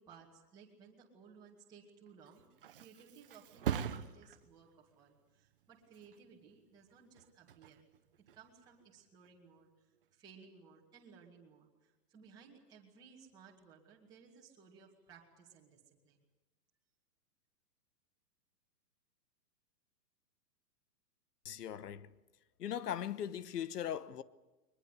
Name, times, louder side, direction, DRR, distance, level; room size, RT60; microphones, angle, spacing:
voice 1, 0.0-2.5 2.8-7.8 8.2-9.7 10.1-16.2, right 6 dB, 10° right, 2.1 m, -59 dB
Thump thud, 2.1-9.5 9.9-10.4, right 9 dB, 35° right, 0.9 m, -44 dB
voice 2, 21.4-22.1 22.6-24.2, left 10 dB, 75° left, 1.2 m, -39 dB
22.5 x 21.5 x 8.3 m
hypercardioid pair, 175°, 48 cm